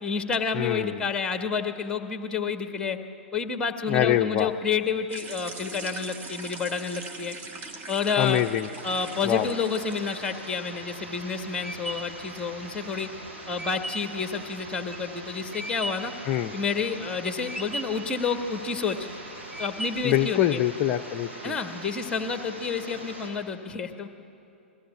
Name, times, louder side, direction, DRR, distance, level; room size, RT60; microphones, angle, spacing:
voice 1, 0.0-3.0 3.3-7.3 7.9-8.4 8.8-13.1 13.5-16.1 16.5-19.1 19.6-20.6 21.4-24.1, left 5 dB, 10° left, 7 dB, 1.3 m, -29 dB
voice 2, 0.5-1.0 3.9-4.5 8.2-8.7 9.2-9.5 16.3-16.5 20.0-21.6, left 12 dB, 30° left, 7 dB, 0.5 m, -24 dB
sound 1, 5.1-10.7, right 3 dB, 25° right, 1.6 m, -41 dB
sound 2, 8.8-23.3, right 2 dB, 70° right, 6.5 m, -42 dB
sound 3, 10.7-16.2 16.6-17.2 17.5-18.1 18.6-19.1 19.5-20.2, right 1 dB, 5° right, 1.4 m, -37 dB
21.0 x 15.5 x 9.0 m, 2.8 s
figure-of-eight pair, 110°, 7 cm